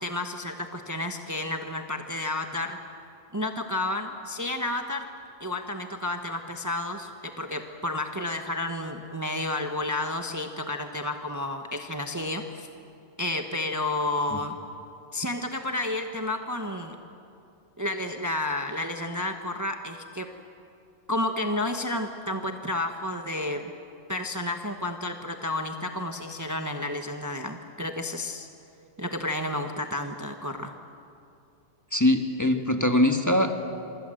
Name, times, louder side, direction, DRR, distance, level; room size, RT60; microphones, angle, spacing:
voice 1, 0.0-2.8 3.3-5.0 5.4-12.7 13.2-14.6 15.1-16.9 17.8-20.3 21.1-23.6 24.1-28.5 29.0-30.7, left 2 dB, 15° right, 5 dB, 1.1 m, -31 dB
voice 2, 31.9-33.7, left 1 dB, 15° left, 5 dB, 1.5 m, -22 dB
26.5 x 24.5 x 7.7 m, 2.7 s
omnidirectional pair, 1.2 m